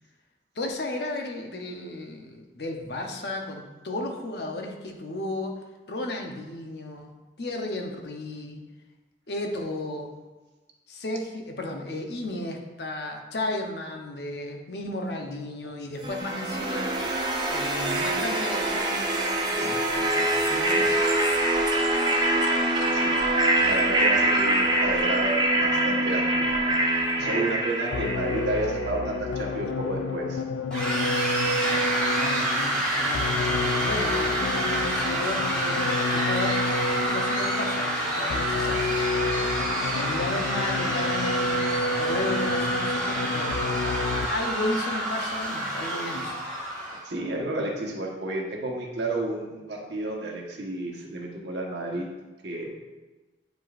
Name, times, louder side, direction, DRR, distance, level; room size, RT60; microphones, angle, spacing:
voice 1, 0.5-5.6 5.9-7.1 7.4-8.6 9.3-10.2 10.9-17.2 17.5-21.1 27.2-27.4 27.9-28.1 31.6-31.9 32.2-35.8 36.1-36.5 37.0-39.5 39.9-43.7 44.3-46.4, left 2 dB, 70° left, 2 dB, 0.8 m, -34 dB
sound 1, 16.0-29.0, right 1 dB, 25° right, 0.6 m, -24 dB
voice 2, 23.6-26.6 27.2-30.4 47.0-52.1 52.4-52.8, right 2 dB, 80° right, -1 dB, 1.2 m, -31 dB
sound 2, 27.9-44.6, left 2 dB, 90° left, 0.3 m, -30 dB
sound 3, 30.7-47.0, right 1 dB, 5° left, 1.5 m, -28 dB
9.1 x 5.2 x 2.5 m, 1.2 s
head